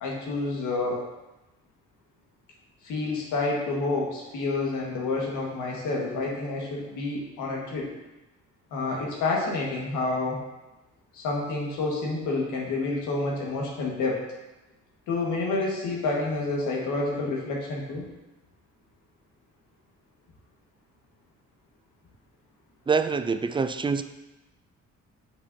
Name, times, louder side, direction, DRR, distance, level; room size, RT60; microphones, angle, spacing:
voice 1, 0.0-1.0 2.8-7.9 8.7-10.4 11.1-14.2 15.1-18.1, left 3 dB, 90° left, -2 dB, 1.7 m, -29 dB
voice 2, 22.9-24.0, right 5 dB, 15° right, 11 dB, 0.3 m, -25 dB
8.3 x 5.2 x 2.8 m, 1.0 s
cardioid pair, 90°, 30 cm